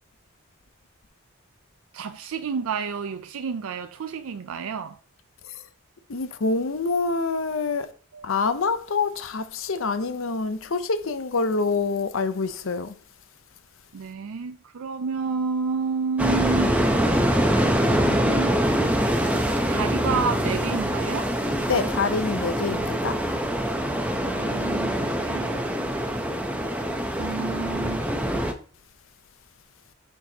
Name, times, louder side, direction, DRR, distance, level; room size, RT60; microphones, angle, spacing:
voice 1, 1.9-5.0 8.1-8.3 13.9-16.8 17.8-18.5 19.0-19.2 19.7-21.4 24.4-25.6 27.2-28.2, right 5 dB, 85° right, 0.4 m, -30 dB
voice 2, 6.1-7.9 8.2-12.9 21.7-23.2, left 4 dB, 70° left, 0.7 m, -26 dB
sound 1, 16.2-28.5, equal, 5° right, 0.6 m, -24 dB
6.9 x 6.0 x 2.8 m
head